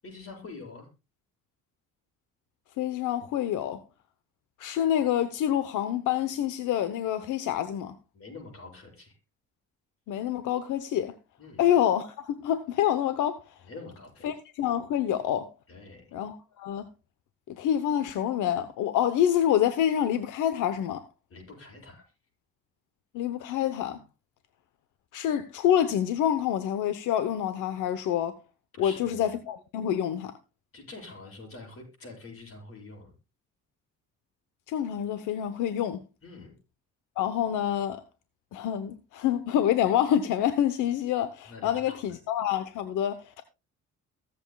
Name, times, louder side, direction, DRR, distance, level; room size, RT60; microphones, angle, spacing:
voice 1, 0.0-0.9 8.1-9.1 11.4-11.6 13.6-14.3 15.7-16.1 21.3-22.0 28.7-29.3 30.7-33.1 36.2-36.5 41.5-42.0, left 3 dB, 45° left, 7.7 m, -45 dB
voice 2, 2.8-3.8 4.6-8.0 10.1-11.1 11.6-13.4 14.2-15.5 16.1-16.9 17.5-21.0 23.1-24.0 25.1-28.4 28.8-30.3 34.7-36.0 37.2-38.0 38.5-43.4, left 10 dB, 90° left, 0.9 m, -27 dB
23.0 x 8.0 x 2.3 m
cardioid pair, 90°, 30 cm